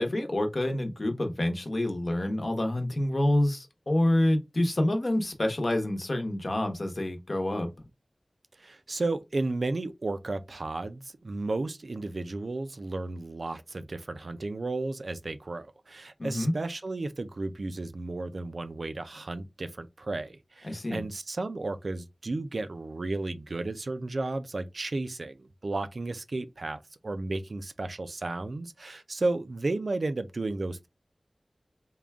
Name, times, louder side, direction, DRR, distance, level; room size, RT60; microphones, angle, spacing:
voice 1, 0.0-7.7 16.2-16.5 20.6-21.0, left 1 dB, 55° left, 0.9 m, -27 dB
voice 2, 8.6-30.9, right 2 dB, 70° right, 0.4 m, -33 dB
3.7 x 2.3 x 3.4 m
wide cardioid pair, 60°, 0 cm